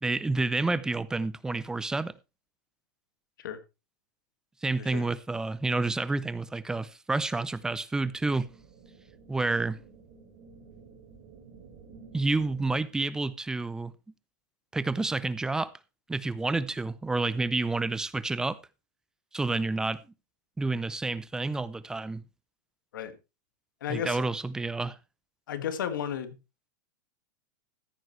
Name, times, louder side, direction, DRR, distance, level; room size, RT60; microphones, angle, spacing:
voice 1, 0.0-2.1 4.6-8.5 9.3-9.8 12.1-13.9 14.7-15.7 16.1-18.6 19.3-20.0 20.6-22.2 23.9-25.0, right 3 dB, 5° right, 0.5 m, -29 dB
sound 1, 8.0-13.1, right 5 dB, 45° right, 3.6 m, -52 dB
voice 2, 23.8-24.2 25.5-26.4, left 8 dB, 85° left, 1.9 m, -33 dB
14.5 x 9.2 x 3.1 m
supercardioid pair, 150°, 10 cm